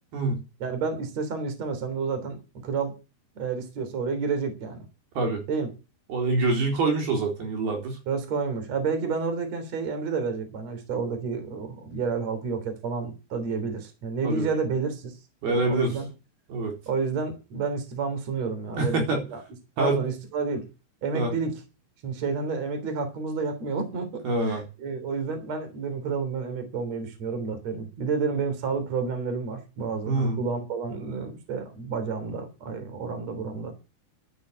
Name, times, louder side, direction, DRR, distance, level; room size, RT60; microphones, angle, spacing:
voice 1, 0.6-2.4 2.6-3.0 3.4-4.8 5.5-5.7 8.1-15.1 15.5-16.1 16.9-19.0 19.3-19.4 19.8-20.7 21.0-21.5 22.0-33.7, right 5 dB, 40° right, 7 dB, 4.2 m, -30 dB
voice 2, 6.1-8.0 14.2-14.5 15.4-15.9 16.5-16.7 18.8-19.2 19.8-20.0 21.1-21.3 24.2-24.6 30.1-30.4, right 2 dB, 60° right, 2 dB, 5.8 m, -25 dB
12.5 x 10.0 x 8.2 m, 0.30 s
omnidirectional pair, 4.9 m